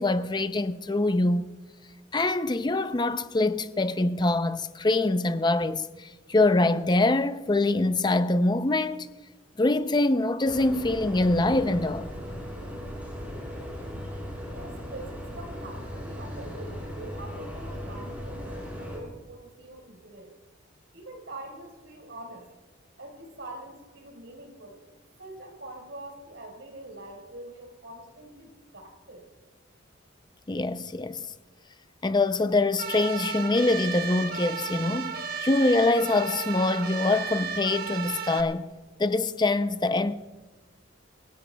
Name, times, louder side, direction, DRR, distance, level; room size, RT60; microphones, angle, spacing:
voice 1, 0.0-1.5 2.1-9.1 9.6-12.1 30.5-31.2 32.0-38.7 39.0-40.1, left 2 dB, 20° left, 0.5 m, -24 dB
sound 1, 10.5-19.0, equal, 10° right, 5.4 m, -38 dB
voice 2, 14.5-20.3 20.9-22.5 23.0-24.8 25.2-29.3, right 2 dB, 65° right, 4.5 m, -44 dB
sound 2, 32.8-38.4, right 6 dB, 50° right, 1.2 m, -34 dB
27.0 x 16.5 x 2.3 m
head